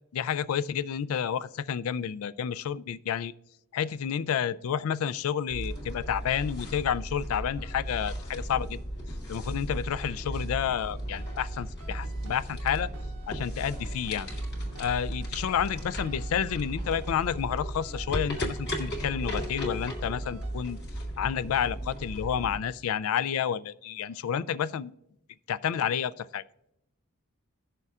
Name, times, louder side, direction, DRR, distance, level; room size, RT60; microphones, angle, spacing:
voice 1, 0.1-3.3 3.7-8.8 9.3-12.9 13.3-14.3 14.8-20.8 21.2-24.9 25.5-26.4, left 8 dB, 75° left, 17 dB, 0.3 m, -30 dB
sound 1, 5.5-22.6, equal, 50° left, 2.1 m, -36 dB
sound 2, 10.6-20.0 20.2-20.5, right 3 dB, 80° right, 0.7 m, -50 dB
17.0 x 6.7 x 2.4 m, 0.83 s
head